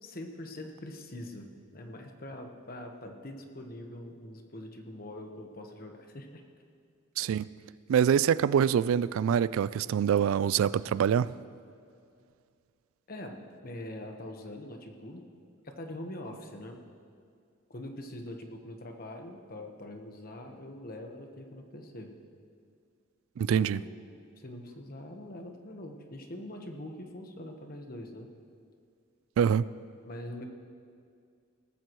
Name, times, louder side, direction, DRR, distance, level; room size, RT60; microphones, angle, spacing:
voice 1, 0.0-6.4 13.1-15.2 15.6-16.8 17.7-22.1 23.5-23.9 24.4-28.3 30.0-30.5, left 1 dB, 45° left, 1.2 m, -43 dB
voice 2, 7.2-7.5 7.9-11.3 23.4-23.8 29.4-29.7, right 8 dB, 90° right, 0.3 m, -25 dB
18.5 x 14.5 x 3.1 m
head